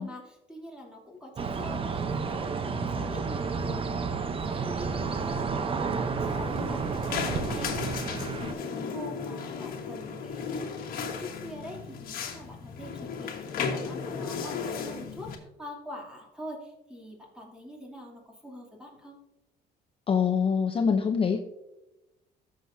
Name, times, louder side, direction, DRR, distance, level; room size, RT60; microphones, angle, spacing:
voice 1, 0.0-19.2, left 1 dB, 5° right, -2 dB, 2.8 m, -45 dB
sound 1, 1.4-8.5, right 5 dB, 35° right, 0.7 m, -31 dB
sound 2, 6.2-15.4, left 6 dB, 60° left, 1.4 m, -35 dB
voice 2, 20.1-21.4, left 6 dB, 35° left, 5 dB, 0.6 m, -24 dB
14.0 x 6.3 x 2.7 m, 0.95 s
cardioid pair, 110°, 17 cm